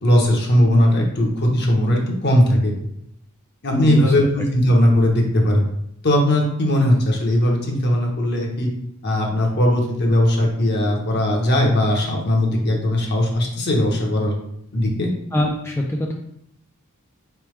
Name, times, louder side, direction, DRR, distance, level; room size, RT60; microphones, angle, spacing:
voice 1, 0.0-2.7 3.6-5.6 6.0-8.7 9.0-14.3 14.7-15.1, left 1 dB, 55° left, 0 dB, 0.9 m, -18 dB
voice 2, 3.7-4.1 15.3-16.2, left 1 dB, 10° left, 0 dB, 0.3 m, -23 dB
4.1 x 3.3 x 3.2 m, 0.75 s
head